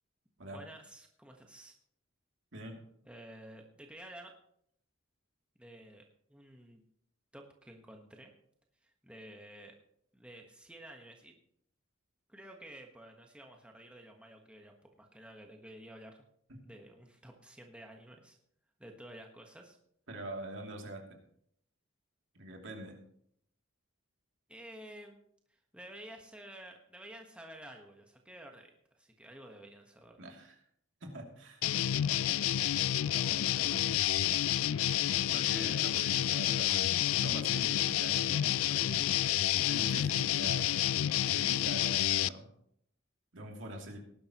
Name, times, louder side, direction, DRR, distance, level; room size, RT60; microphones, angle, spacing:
voice 1, 0.5-1.7 3.0-4.3 5.6-6.8 7.3-8.3 8.8-9.7 10.1-11.4 12.3-16.2 16.6-18.4 18.8-19.8 24.5-25.2 25.5-30.3 33.0-33.9 34.7-34.8 35.3-35.5, right 1 dB, 5° right, 2 dB, 1.3 m, -51 dB
voice 2, 20.1-21.1 22.3-23.0 30.2-30.5 31.0-31.6 35.3-39.2 39.7-40.7 41.2-42.5 43.3-44.0, right 1 dB, 65° right, 1 dB, 2.8 m, -44 dB
sound 1, 31.6-42.3, left 12 dB, 85° left, 0.4 m, -29 dB
18.5 x 11.5 x 3.0 m, 0.69 s
head